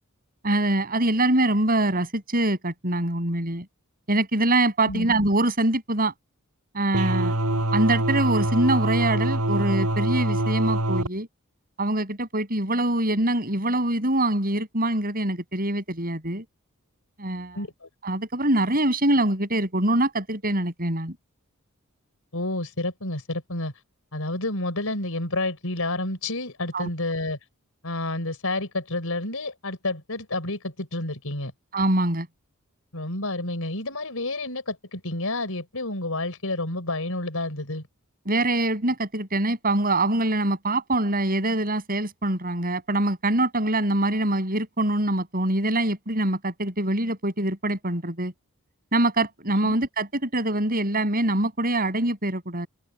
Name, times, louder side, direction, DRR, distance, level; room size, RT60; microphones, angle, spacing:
voice 1, 0.4-3.7 4.1-6.1 6.7-7.4 7.7-11.3 11.8-16.5 17.2-17.6 18.0-21.2 26.7-26.9 31.7-32.3 38.3-48.3 48.9-52.7, right 1 dB, 40° right, 6.9 m, -24 dB
voice 2, 4.9-5.2 17.5-17.9 22.3-23.7 24.1-27.4 27.8-31.5 32.9-37.9 49.5-49.8, left 2 dB, 70° left, 5.6 m, -30 dB
sound 1, 6.9-11.1, right 1 dB, 80° right, 6.2 m, -24 dB
open air
head